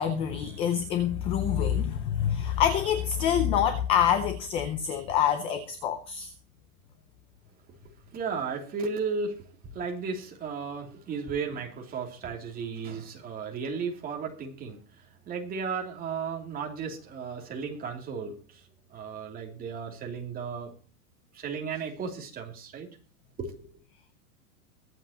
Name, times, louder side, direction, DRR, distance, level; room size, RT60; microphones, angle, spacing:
voice 1, 0.0-6.3, left 9 dB, 15° left, 0.4 m, -26 dB
voice 2, 8.1-9.5 9.7-14.8 15.3-20.7 21.3-22.9 23.4-23.8, right 5 dB, 20° right, 2.9 m, -35 dB
22.0 x 7.9 x 2.9 m
supercardioid pair, 160°, 45 cm